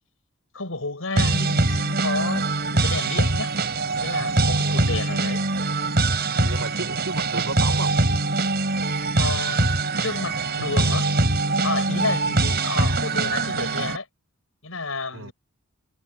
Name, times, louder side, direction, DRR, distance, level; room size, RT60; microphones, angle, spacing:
voice 1, 0.5-3.5 4.0-5.4 9.2-9.6 10.0-11.1 11.6-14.1 14.6-15.3, left 3 dB, 80° left, 6.1 m, -31 dB
sound 1, 1.1-14.0, right 2 dB, 50° right, 5.0 m, -23 dB
voice 2, 6.4-8.0 15.1-15.3, right 2 dB, 70° right, 4.6 m, -33 dB
head